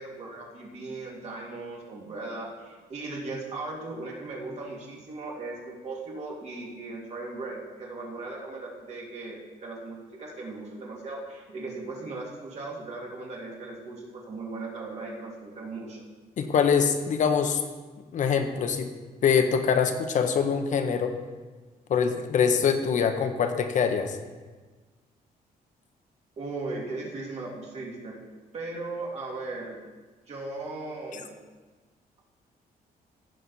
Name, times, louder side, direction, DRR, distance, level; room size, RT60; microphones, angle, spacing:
voice 1, 0.0-16.1 26.4-28.2 28.5-29.8 30.3-31.4, right 3 dB, 45° right, -2 dB, 2.4 m, -37 dB
voice 2, 16.4-17.6 18.1-18.9 19.2-21.1 21.9-24.2 31.1-31.2, left 6 dB, 55° left, 7 dB, 1.0 m, -24 dB
15.5 x 6.4 x 4.1 m, 1.3 s
cardioid pair, 150°, 16 cm